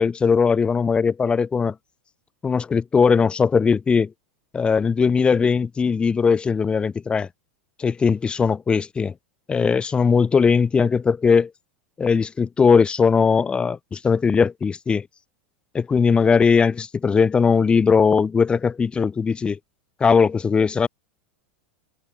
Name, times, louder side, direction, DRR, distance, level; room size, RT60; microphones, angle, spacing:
voice 1, 0.0-1.7 2.4-4.1 4.5-7.3 7.8-9.1 9.5-11.5 12.0-15.1 15.7-19.6 20.0-20.9, left 5 dB, 20° left, 0.9 m, -19 dB
open air
hypercardioid pair, 115°, 6 cm